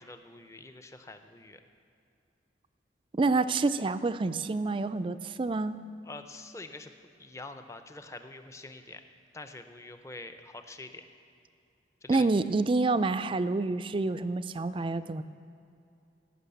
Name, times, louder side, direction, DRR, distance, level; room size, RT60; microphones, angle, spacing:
voice 1, 0.0-1.6 6.0-6.9 7.2-9.0 9.3-11.0 12.0-12.3, left 2 dB, 15° left, 8 dB, 0.6 m, -45 dB
voice 2, 3.1-5.8 12.1-15.2, right 3 dB, 30° right, 12 dB, 0.4 m, -28 dB
16.5 x 6.1 x 8.3 m, 2.6 s
head